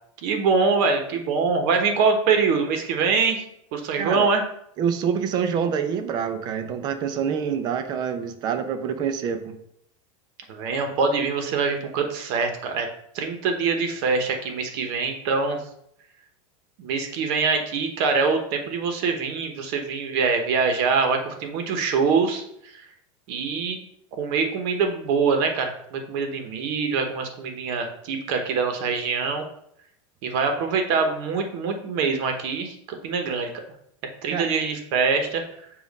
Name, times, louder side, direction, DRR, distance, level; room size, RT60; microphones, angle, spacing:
voice 1, 0.2-3.4 3.7-4.4 10.5-12.9 13.1-15.6 16.8-22.4 23.3-23.8 24.2-29.4 30.2-32.7 33.0-33.5 34.2-35.4, right 5 dB, 45° right, 5 dB, 1.0 m, -24 dB
voice 2, 4.0-4.3 4.8-9.6 34.3-34.5, right 7 dB, 25° right, 9 dB, 0.5 m, -26 dB
7.2 x 2.5 x 5.2 m, 0.74 s
supercardioid pair, 165°, 17 cm